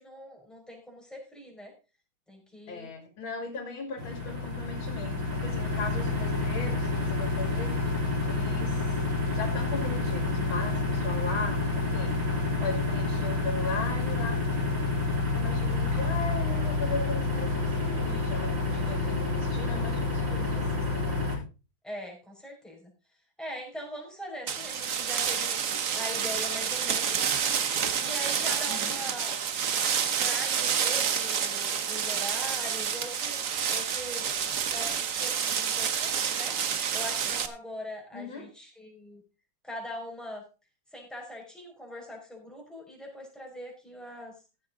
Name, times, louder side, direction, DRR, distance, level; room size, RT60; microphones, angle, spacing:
voice 1, 0.0-1.7 2.3-2.9 21.8-22.9 23.4-25.6 25.9-27.6 28.0-29.4 30.2-34.4 34.7-36.6 36.9-39.2 39.6-40.4 40.9-44.4, left 1 dB, ahead, -1 dB, 5.1 m, -41 dB
voice 2, 2.7-7.8 8.3-8.8 9.3-12.2 12.6-14.4 15.3-21.3 28.7-29.0 38.1-38.5, left 3 dB, 70° left, 5 dB, 2.9 m, -37 dB
sound 1, 4.0-21.4, left 3 dB, 65° right, 4.4 m, -29 dB
sound 2, 24.5-37.5, right 7 dB, 50° right, 1.2 m, -29 dB
15.0 x 8.8 x 3.8 m, 0.32 s
omnidirectional pair, 2.2 m